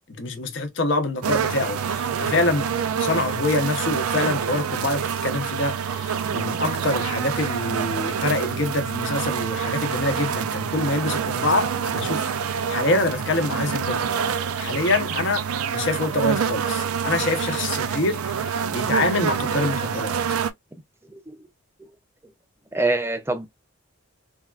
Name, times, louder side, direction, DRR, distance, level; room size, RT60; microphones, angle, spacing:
voice 1, 0.1-2.7 3.0-14.1 14.6-20.2, left 2 dB, 55° left, 0.6 m, -25 dB
sound 1, 1.2-20.5, right 7 dB, 85° right, 0.4 m, -26 dB
voice 2, 22.7-23.6, right 2 dB, 10° right, 0.4 m, -25 dB
3.4 x 2.3 x 2.2 m
head